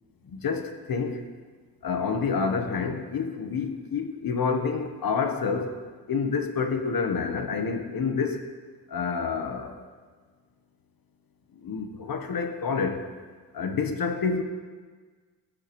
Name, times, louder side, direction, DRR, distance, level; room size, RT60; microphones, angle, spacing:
voice 1, 0.3-1.2 1.8-5.8 6.1-8.4 8.9-9.8 11.6-13.0 13.5-14.4, left 5 dB, 55° left, 6 dB, 1.1 m, -28 dB
16.5 x 7.6 x 3.1 m, 1.5 s
cardioid pair, 90°, 41 cm